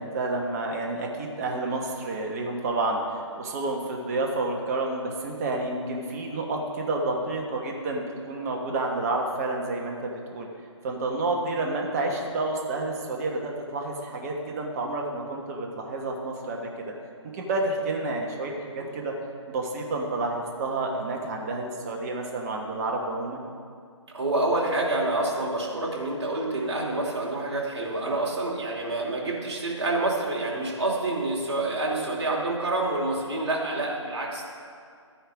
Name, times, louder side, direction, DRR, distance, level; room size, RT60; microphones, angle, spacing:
voice 1, 0.0-3.0 3.4-10.5 10.8-16.7 17.3-19.1 19.5-23.4, right 2 dB, 30° right, 0 dB, 1.3 m, -29 dB
voice 2, 24.1-34.5, right 2 dB, 55° right, -2 dB, 2.8 m, -27 dB
13.0 x 10.0 x 3.6 m, 2.2 s
figure-of-eight pair, 145°, 16 cm